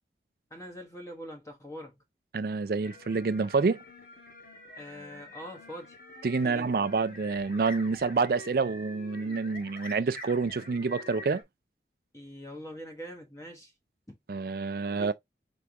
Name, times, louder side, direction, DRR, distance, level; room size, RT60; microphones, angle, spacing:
voice 1, 0.5-2.0 4.8-5.9 6.4-6.7 12.1-13.7 14.9-15.1, equal, 20° left, 1.3 m, -43 dB
voice 2, 2.3-3.8 6.2-11.4 14.3-15.1, right 4 dB, 55° right, 0.4 m, -28 dB
sound 1, 2.8-11.4, left 1 dB, 55° left, 1.4 m, -46 dB
4.9 x 3.5 x 2.9 m
head